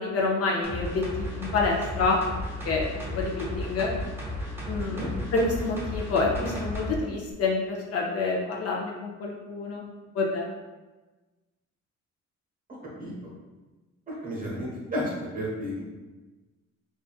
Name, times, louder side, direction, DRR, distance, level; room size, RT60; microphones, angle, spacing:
voice 1, 0.0-2.2 2.6-3.9 4.7-9.9 10.1-10.5, left 3 dB, 50° left, -2 dB, 0.5 m, -28 dB
sound 1, 0.6-7.0 7.3-7.4, left 1 dB, 10° right, 0.6 m, -34 dB
voice 2, 14.2-15.0 15.3-15.8, equal, 30° right, -5 dB, 1.0 m, -32 dB
2.5 x 2.4 x 2.3 m, 1.2 s
cardioid pair, 90°, 30 cm